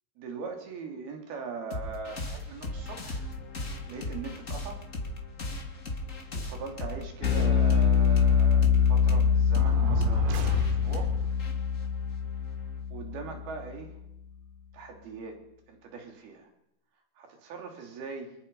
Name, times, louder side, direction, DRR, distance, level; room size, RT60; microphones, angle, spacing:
voice 1, 0.2-3.3 3.9-4.8 6.3-11.1 12.9-13.9 14.7-15.4 15.7-16.5 17.2-18.3, right 5 dB, 65° right, 3 dB, 4.8 m, -40 dB
sound 1, 1.7-12.8, left 2 dB, 25° left, 1.9 m, -37 dB
Bass guitar, 7.2-13.7, left 7 dB, 70° left, 6.2 m, -24 dB
sound 2, 9.6-11.3, right 4 dB, 85° right, 4.2 m, -33 dB
24.5 x 21.5 x 5.5 m, 0.81 s
omnidirectional pair, 4.8 m